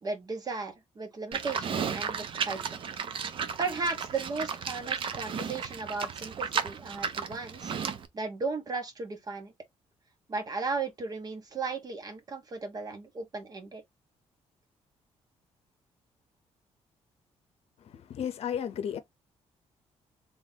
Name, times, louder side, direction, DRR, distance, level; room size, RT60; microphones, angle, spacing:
voice 1, 0.0-2.8 3.6-7.7 8.1-9.5 10.3-13.8, right 4 dB, 35° right, 1.2 m, -35 dB
Livestock farm animals working animals, 1.3-8.1, right 6 dB, 50° right, 0.7 m, -34 dB
voice 2, 17.8-19.0, left 8 dB, 60° left, 0.8 m, -34 dB
3.9 x 3.6 x 2.8 m
cardioid pair, 135°, 11 cm